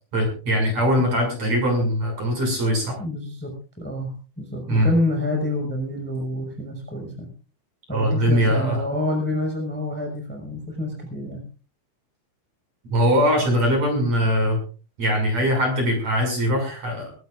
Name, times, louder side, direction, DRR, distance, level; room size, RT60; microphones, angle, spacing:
voice 1, 0.1-3.0 4.7-4.9 7.9-8.8 12.9-14.6 15.0-17.1, equal, 35° right, 2 dB, 7.6 m, -21 dB
voice 2, 3.0-3.5 3.8-7.3 7.9-11.4, left 1 dB, ahead, 1 dB, 5.2 m, -27 dB
23.0 x 18.0 x 2.6 m, 0.38 s
omnidirectional pair, 5.4 m